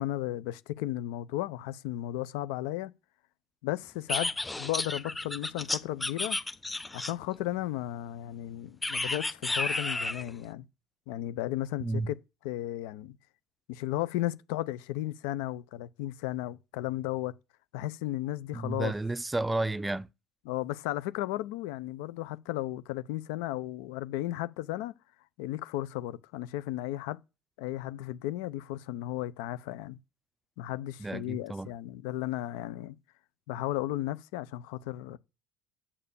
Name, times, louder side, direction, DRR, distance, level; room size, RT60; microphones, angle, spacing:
voice 1, 0.0-2.9 3.6-4.3 4.6-6.4 6.9-10.7 11.1-12.2 12.4-13.2 13.7-17.3 17.7-18.9 20.5-24.9 25.4-27.2 27.6-30.0 30.6-33.0 33.5-35.2, left 15 dB, 80° left, 0.7 m, -34 dB
sound 1, 4.1-7.4 8.8-10.3, left 2 dB, 15° left, 1.0 m, -32 dB
voice 2, 11.8-12.1 18.5-20.1 31.0-31.7, right 2 dB, 10° right, 0.5 m, -32 dB
8.8 x 6.7 x 6.9 m
supercardioid pair, 90°, 0 cm